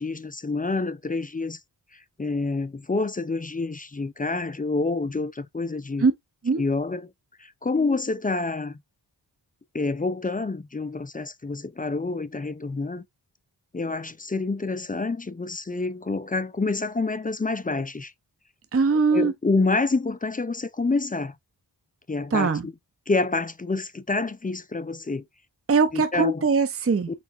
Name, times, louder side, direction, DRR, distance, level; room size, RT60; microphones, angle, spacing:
voice 1, 0.0-1.6 1.9-6.1 6.6-7.1 7.4-8.8 9.7-13.0 13.7-18.1 19.1-21.3 22.1-22.7 23.1-25.2 25.9-26.4, left 3 dB, 20° left, 0.4 m, -27 dB
voice 2, 18.7-19.3 22.3-22.7 25.7-27.1, right 4 dB, 30° right, 0.6 m, -21 dB
4.2 x 3.9 x 2.4 m
wide cardioid pair, 70°, 44 cm